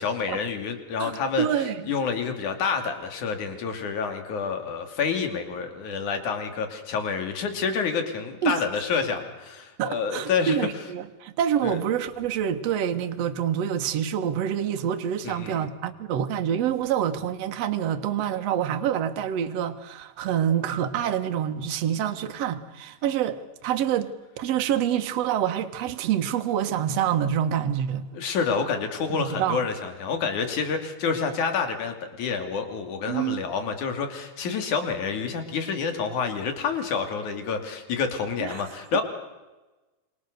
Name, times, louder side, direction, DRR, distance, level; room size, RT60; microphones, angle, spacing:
voice 1, 0.0-1.5 1.9-10.7 11.6-11.8 15.2-15.7 28.1-39.0, left 5 dB, 60° left, 4.0 m, -28 dB
voice 2, 1.0-1.9 8.4-8.6 9.8-24.1 24.4-28.1 29.1-29.6 33.1-33.5 38.4-38.6, right 9 dB, 55° right, 2.2 m, -27 dB
27.5 x 25.5 x 6.8 m
omnidirectional pair, 4.1 m